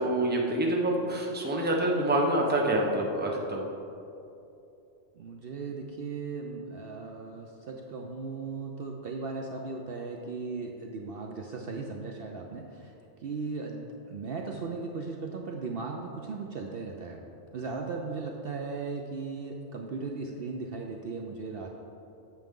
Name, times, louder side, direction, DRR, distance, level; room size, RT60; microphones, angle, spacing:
voice 1, 0.0-3.7, right 1 dB, 10° right, -1 dB, 0.7 m, -27 dB
voice 2, 5.1-12.9 13.2-17.2 17.5-21.7, right 4 dB, 60° right, 2 dB, 0.7 m, -37 dB
9.0 x 7.0 x 3.7 m, 2.7 s
omnidirectional pair, 1.3 m